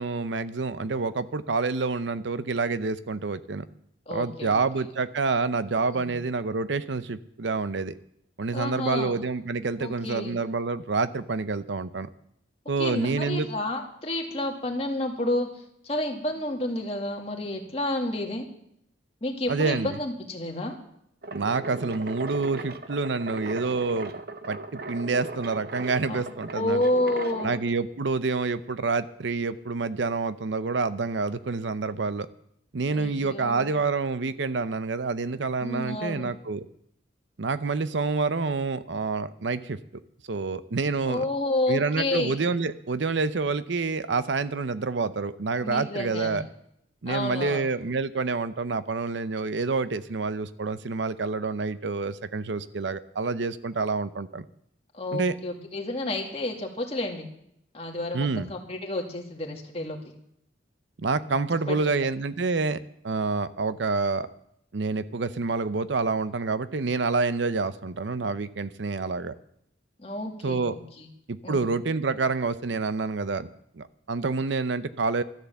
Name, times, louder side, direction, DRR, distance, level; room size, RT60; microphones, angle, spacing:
voice 1, 0.0-3.6 4.1-8.0 8.4-12.1 12.7-13.5 19.5-20.0 21.3-24.1 24.5-26.8 27.4-32.3 32.7-36.7 37.4-39.8 40.3-41.3 41.7-46.4 47.0-54.4 55.1-55.3 58.1-58.5 61.0-62.8 63.0-64.3 64.7-69.3 70.4-70.8 71.3-73.5 73.7-75.2, right 4 dB, 75° right, 14 dB, 0.7 m, -28 dB
voice 2, 4.1-4.6 5.9-6.1 8.5-9.1 9.8-10.3 12.8-18.5 19.2-20.7 26.1-26.2 26.5-27.5 32.9-33.7 35.6-36.3 41.1-42.4 45.6-46.4 47.1-47.7 54.9-57.3 57.7-60.0 61.2-61.8 70.0-71.1 71.4-71.7, left 1 dB, 30° left, 1 dB, 2.2 m, -30 dB
sound 1, 21.2-27.6, right 2 dB, 55° right, 0.9 m, -38 dB
13.0 x 10.0 x 7.1 m, 0.73 s
head